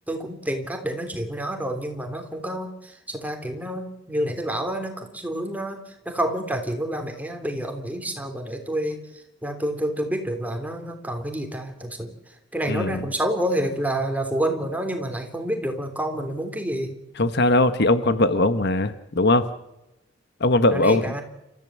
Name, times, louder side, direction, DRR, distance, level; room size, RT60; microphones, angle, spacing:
voice 1, 0.1-9.0 9.4-12.1 12.5-17.0 20.7-21.2, right 1 dB, 10° right, 5 dB, 3.4 m, -28 dB
voice 2, 12.7-13.0 17.2-19.5 20.4-21.0, left 2 dB, 60° left, 11 dB, 1.3 m, -20 dB
29.5 x 14.5 x 7.6 m, 0.91 s
head